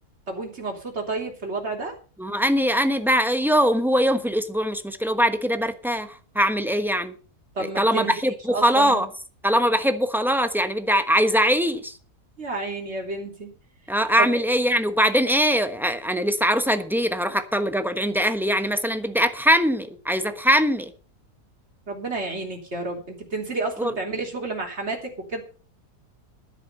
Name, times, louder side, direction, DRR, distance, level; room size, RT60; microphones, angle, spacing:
voice 1, 0.3-1.9 7.5-8.1 8.5-9.0 12.4-13.5 14.2-14.4 21.9-25.4, right 3 dB, 45° right, 3.5 m, -30 dB
voice 2, 2.2-7.1 7.6-9.1 9.4-12.0 13.9-20.9 23.8-23.9, equal, ahead, 0.9 m, -22 dB
12.0 x 10.5 x 5.5 m
omnidirectional pair, 1.6 m